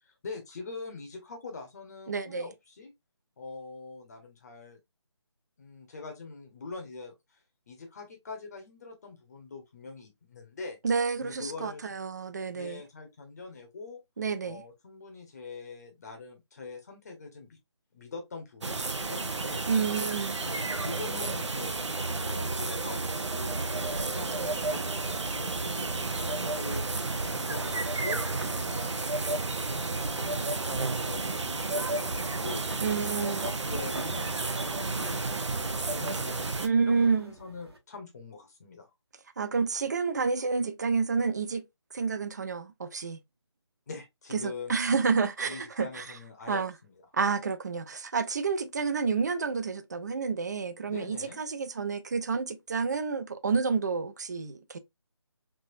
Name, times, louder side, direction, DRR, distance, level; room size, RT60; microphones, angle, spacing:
voice 1, 0.0-2.9 3.4-4.8 5.6-10.8 11.2-11.8 12.5-14.0 14.4-17.6 17.9-19.7 20.4-23.0 23.3-23.6 23.9-29.1 29.7-32.8 33.1-36.4 36.8-38.9 43.9-44.8 45.5-46.9 50.9-51.4, left 3 dB, 35° left, 0.8 m, -43 dB
voice 2, 2.1-2.5 10.8-12.8 14.2-14.6 19.6-20.4 32.8-33.5 36.6-37.3 39.4-41.7 41.9-43.2 44.4-46.1 46.5-46.7 47.1-54.8, right 5 dB, 35° right, 0.4 m, -29 dB
sound 1, 18.6-36.7, right 3 dB, 80° right, 0.6 m, -32 dB
sound 2, 25.0-37.8, right 2 dB, 60° right, 1.1 m, -47 dB
3.4 x 2.6 x 2.5 m
figure-of-eight pair, 155°, 15 cm